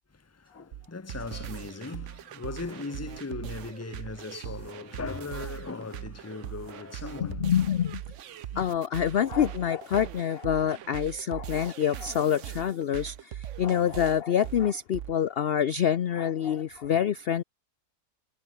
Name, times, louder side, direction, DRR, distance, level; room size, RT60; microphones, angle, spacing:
voice 1, 0.1-7.5 8.3-8.6, left 3 dB, 10° left, 0.8 m, -39 dB
sound 1, 0.7-15.1, right 12 dB, 60° right, 0.9 m, -40 dB
voice 2, 7.4-8.0 8.5-17.4, left 9 dB, 55° left, 0.6 m, -26 dB
omnidirectional pair, 1.7 m